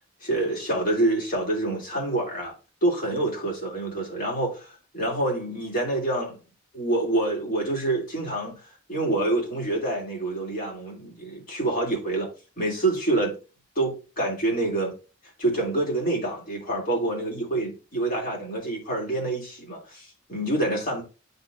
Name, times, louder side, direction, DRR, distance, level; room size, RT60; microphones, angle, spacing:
voice 1, 0.2-2.5 2.8-6.4 6.7-8.6 8.9-12.3 12.6-13.4 13.7-15.0 15.4-21.0, right 2 dB, 45° left, 3.1 m, -27 dB
11.5 x 4.2 x 2.6 m
head